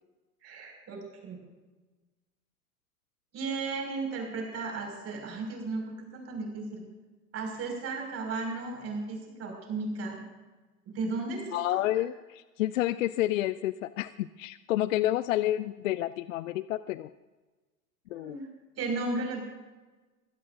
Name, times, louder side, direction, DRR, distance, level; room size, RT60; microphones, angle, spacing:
voice 1, 0.4-1.4 3.3-6.8 7.3-10.2 10.9-12.0 18.1-18.5 18.8-19.4, right 3 dB, 30° right, 1 dB, 5.6 m, -35 dB
voice 2, 11.5-17.1 18.1-18.4, left 14 dB, 55° left, 16 dB, 0.5 m, -29 dB
22.0 x 16.0 x 2.6 m, 1.2 s
figure-of-eight pair, 95°, 48 cm